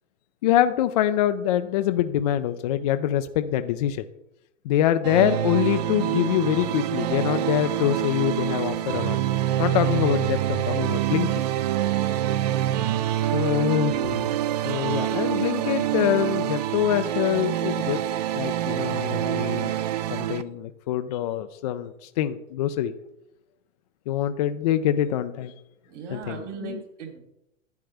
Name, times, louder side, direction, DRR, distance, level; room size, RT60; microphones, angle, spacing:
voice 1, 0.4-4.0 4.7-9.2 9.6-11.3 13.3-13.9 14.6-18.0 18.3-19.7 20.1-22.9 24.1-25.5 26.1-26.8, left 11 dB, 35° left, 9 dB, 0.4 m, -25 dB
sound 1, 5.0-20.4, right 12 dB, 35° right, 0.4 m, -26 dB
voice 2, 13.5-14.2 25.9-27.2, right 4 dB, 65° right, 2 dB, 3.4 m, -37 dB
11.5 x 8.6 x 3.3 m, 0.88 s
hypercardioid pair, 135°, 38 cm